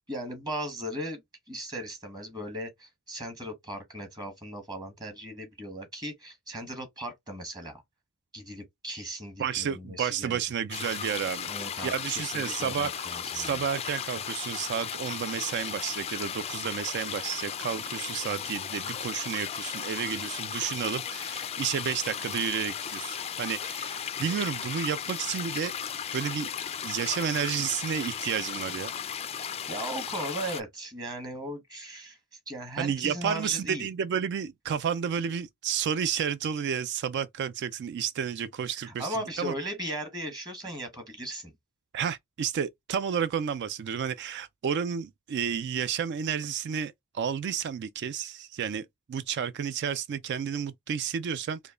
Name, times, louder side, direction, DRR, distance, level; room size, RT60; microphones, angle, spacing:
voice 1, 0.1-1.2 1.5-7.8 8.3-10.4 11.4-13.6 29.7-32.2 32.5-33.9 38.7-41.5, right 1 dB, 20° right, 1.1 m, -37 dB
voice 2, 9.4-11.5 11.8-12.9 13.3-25.7 26.1-26.5 26.8-28.9 32.8-39.5 41.9-51.6, right 7 dB, 55° right, 0.3 m, -31 dB
sound 1, 10.7-30.6, left 8 dB, 30° left, 0.3 m, -36 dB
5.0 x 2.2 x 2.4 m
head